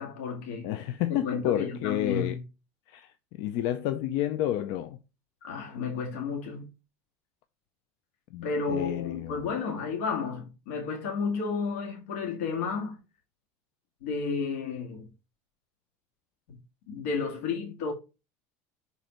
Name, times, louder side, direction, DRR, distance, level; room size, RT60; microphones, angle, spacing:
voice 1, 0.0-0.7 1.1-2.4 5.4-6.7 8.4-13.0 14.0-15.1 16.5-16.6 16.9-17.9, left 5 dB, 85° left, 1.9 m, -32 dB
voice 2, 0.6-2.4 2.9-5.0 8.3-9.5, left 12 dB, 60° left, 0.5 m, -30 dB
6.1 x 4.0 x 5.1 m
supercardioid pair, 140°, 7 cm